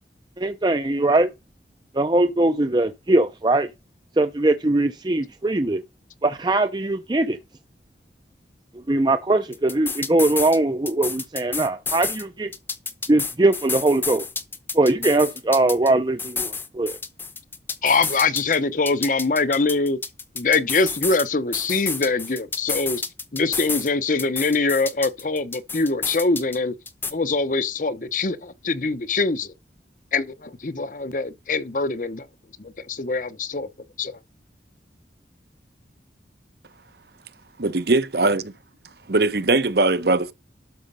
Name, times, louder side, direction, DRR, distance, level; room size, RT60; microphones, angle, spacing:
voice 1, 0.4-1.3 1.9-3.7 4.2-5.8 6.2-7.4 8.9-12.5 13.1-14.3 14.7-17.0, right 2 dB, 25° right, 0.5 m, -21 dB
sound 1, 9.5-10.6 10.9-12.2 12.5-15.9 16.2-18.6 18.9-21.2 21.5-23.9 24.2-26.6 26.9-27.1, left 4 dB, 10° left, 0.8 m, -30 dB
voice 2, 17.8-20.0 20.3-23.0 23.3-26.7 27.1-29.5 30.1-32.3 32.6-33.7 34.0-34.2, left 3 dB, 45° left, 0.7 m, -23 dB
voice 3, 37.6-38.5 39.1-40.3, right 3 dB, 60° right, 0.9 m, -20 dB
12.5 x 5.0 x 5.4 m
head